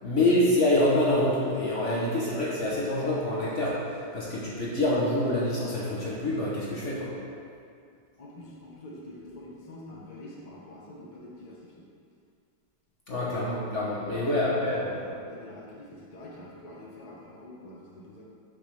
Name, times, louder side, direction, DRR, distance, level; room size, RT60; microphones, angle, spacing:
voice 1, 0.0-7.1 13.1-14.9, left 1 dB, 45° left, -6 dB, 1.2 m, -26 dB
voice 2, 8.2-11.8 14.1-18.2, left 1 dB, 25° left, -5 dB, 0.9 m, -45 dB
8.7 x 5.8 x 3.4 m, 2.3 s
omnidirectional pair, 2.0 m